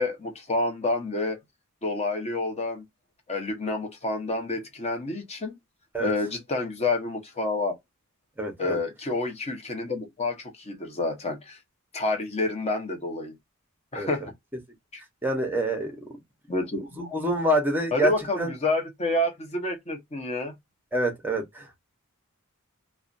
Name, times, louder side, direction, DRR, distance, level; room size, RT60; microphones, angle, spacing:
voice 1, 0.0-1.4 1.8-2.8 3.3-5.5 6.0-7.8 8.6-11.6 11.9-13.4 13.9-14.3 14.9-15.0 16.5-17.1 17.9-20.5, left 2 dB, 30° left, 0.8 m, -29 dB
voice 2, 8.4-8.8 13.9-14.3 15.2-16.0 16.8-18.1 18.4-18.5 20.9-21.8, right 1 dB, 10° right, 0.7 m, -26 dB
2.4 x 2.2 x 2.5 m
head